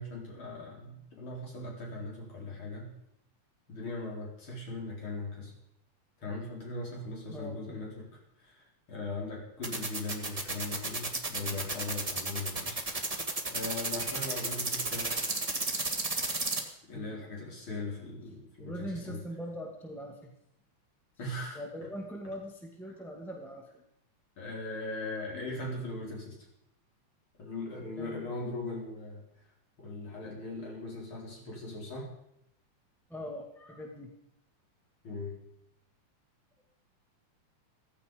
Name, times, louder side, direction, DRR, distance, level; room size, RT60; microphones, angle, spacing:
voice 1, 0.0-2.9 3.7-5.5 6.2-8.1 8.4-12.8 13.5-15.1 16.9-19.2 21.2-21.6 24.4-26.4 27.4-29.2 29.8-32.1 35.0-35.4, left 2 dB, 40° left, -2 dB, 5.5 m, -39 dB
voice 2, 7.3-7.9 16.9-17.1 18.6-20.3 21.5-23.8 28.0-28.3 33.1-34.1, equal, ahead, 1 dB, 1.1 m, -41 dB
sound 1, 9.6-16.6, right 3 dB, 15° right, 1.3 m, -32 dB
16.5 x 15.5 x 5.2 m, 0.77 s
omnidirectional pair, 3.6 m